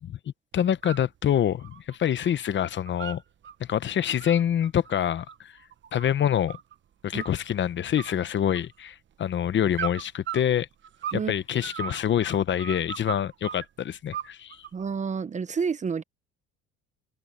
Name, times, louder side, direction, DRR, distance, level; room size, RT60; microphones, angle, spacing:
voice 1, 0.5-3.2 3.6-5.5 5.9-6.6 7.0-10.7 11.1-14.6, left 9 dB, 40° left, 0.8 m, -26 dB
sound 1, 0.6-1.1 1.4-2.4 2.6-3.6 4.0-6.8 7.2-7.6 8.0-8.9 9.7-11.3 11.6-13.7 14.1-14.9, right 9 dB, 40° right, 1.1 m, -37 dB
voice 2, 14.7-16.0, right 5 dB, 25° right, 0.7 m, -29 dB
cardioid pair, 120°, 30 cm